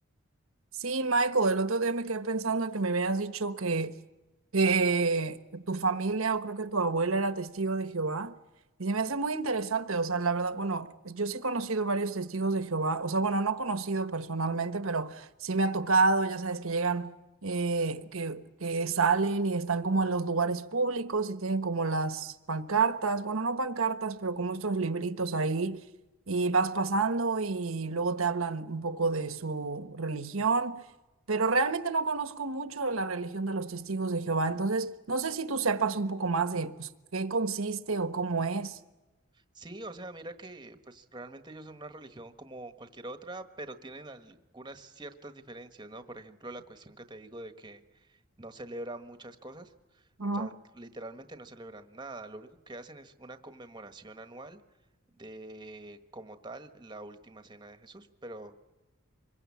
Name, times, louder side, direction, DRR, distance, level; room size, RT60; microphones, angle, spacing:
voice 1, 0.8-3.9 4.5-8.3 8.8-17.1 17.4-25.8 26.3-30.8 31.3-38.8 50.2-50.5, right 3 dB, 70° right, 1.3 m, -29 dB
voice 2, 39.3-50.1 50.3-54.6 55.1-58.7, right 2 dB, 20° right, 1.4 m, -45 dB
26.0 x 22.0 x 8.6 m
head